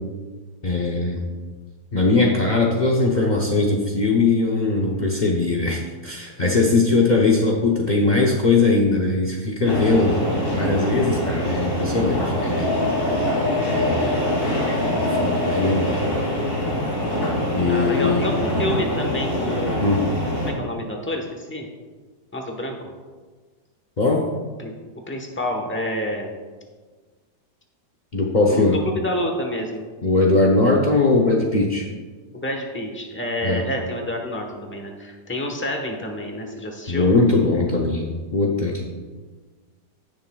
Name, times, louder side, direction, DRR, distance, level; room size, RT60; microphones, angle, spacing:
voice 1, 0.6-1.3 1.9-10.2 10.5-12.7 13.0-13.2 13.7-14.1 14.6-14.7 15.2-16.1 17.5-18.5 19.8-20.0 24.0-24.3 28.1-28.8 30.0-31.9 33.4-33.6 36.9-38.8, left 3 dB, 60° left, -2 dB, 0.4 m, -20 dB
sound 1, 9.6-20.5, left 1 dB, 45° left, 3.0 m, -24 dB
voice 2, 17.7-20.0 20.4-21.7 22.3-22.8 24.6-24.7 25.1-26.4 28.5-28.7 29.0-29.9 32.3-37.1, left 1 dB, 10° left, 2 dB, 0.7 m, -28 dB
17.0 x 6.5 x 2.3 m, 1.4 s
omnidirectional pair, 2.0 m